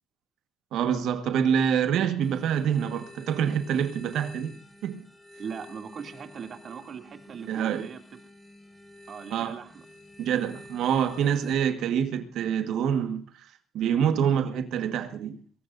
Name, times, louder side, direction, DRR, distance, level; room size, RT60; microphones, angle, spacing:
voice 1, 0.7-4.5 4.8-5.1 7.5-7.9 9.3-9.6 10.2-13.5 13.7-15.4, right 8 dB, 85° right, 1.6 m, -26 dB
sound 1, 2.2-11.5, left 1 dB, 10° left, 5.3 m, -49 dB
voice 2, 5.4-8.0 9.1-9.8, right 6 dB, 55° right, 2.7 m, -40 dB
22.5 x 18.0 x 2.7 m
cardioid pair, 90°, 0 cm